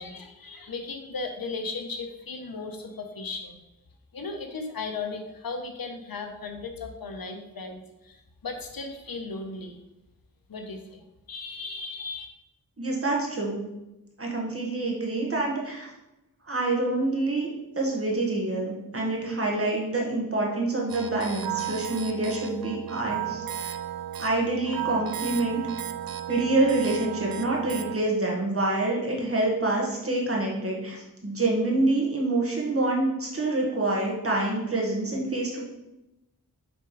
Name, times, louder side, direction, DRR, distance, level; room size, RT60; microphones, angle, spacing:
voice 1, 0.0-3.6 4.1-9.8 10.5-12.3, left 3 dB, 70° left, 4 dB, 1.0 m, -36 dB
voice 2, 12.8-13.6 14.2-15.9 16.4-17.5 17.7-23.7 24.2-25.6 26.3-35.6, right 2 dB, 40° right, -2 dB, 1.7 m, -26 dB
sound 1, 20.9-28.0, right 11 dB, 70° right, 0.5 m, -34 dB
6.4 x 3.7 x 4.7 m, 0.95 s
wide cardioid pair, 100°, 36 cm